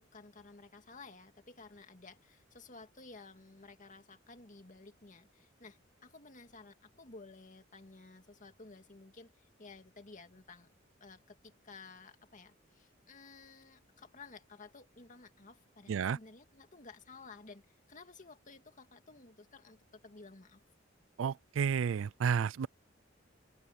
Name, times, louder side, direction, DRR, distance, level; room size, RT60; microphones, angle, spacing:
voice 1, 0.0-10.7 11.0-20.6, left 3 dB, 40° left, 2.2 m, -54 dB
voice 2, 21.2-22.7, right 7 dB, 75° right, 0.4 m, -31 dB
head